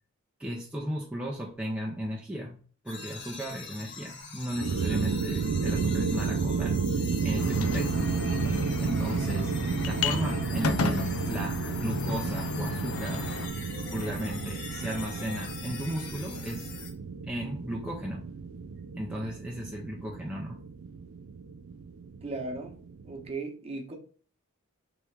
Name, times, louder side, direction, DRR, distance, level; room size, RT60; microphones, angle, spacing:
voice 1, 0.4-2.6 2.8-8.1 8.8-9.5 9.8-13.3 13.9-16.7 17.3-18.3 18.9-20.6, equal, 5° right, 0.6 m, -35 dB
sound 1, 2.9-16.9, left 5 dB, 55° left, 1.1 m, -42 dB
sound 2, 4.5-23.3, right 5 dB, 85° right, 0.4 m, -32 dB
sound 3, 7.4-13.5, left 4 dB, 85° left, 0.5 m, -33 dB
voice 2, 22.2-22.8 23.0-23.9, right 3 dB, 30° right, 1.0 m, -36 dB
3.5 x 3.2 x 4.6 m
head